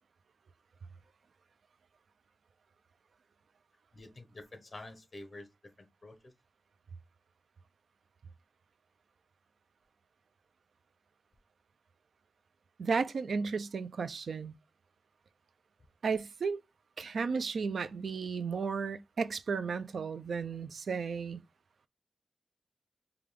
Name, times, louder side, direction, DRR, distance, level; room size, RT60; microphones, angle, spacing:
voice 1, 3.9-5.5 5.8-6.3, left 2 dB, 30° left, 1.0 m, -48 dB
voice 2, 12.8-14.5 16.0-16.6 17.0-21.4, right 5 dB, 90° right, 0.3 m, -34 dB
5.1 x 2.3 x 3.2 m
wide cardioid pair, 120°, 0 cm